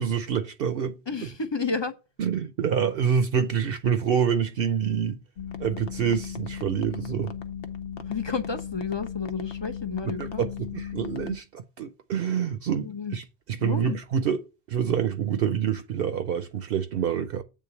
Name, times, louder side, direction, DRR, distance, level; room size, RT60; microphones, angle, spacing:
voice 1, 0.0-0.9 2.2-5.2 5.6-7.3 10.0-14.4 14.7-17.4, right 8 dB, 65° right, 0.8 m, -27 dB
voice 2, 1.1-1.9 8.0-10.5 12.8-13.2 13.6-14.0, left 5 dB, 30° left, 0.6 m, -31 dB
sound 1, 5.4-11.4, left 7 dB, 70° left, 1.0 m, -36 dB
8.4 x 3.8 x 6.9 m
omnidirectional pair, 1.0 m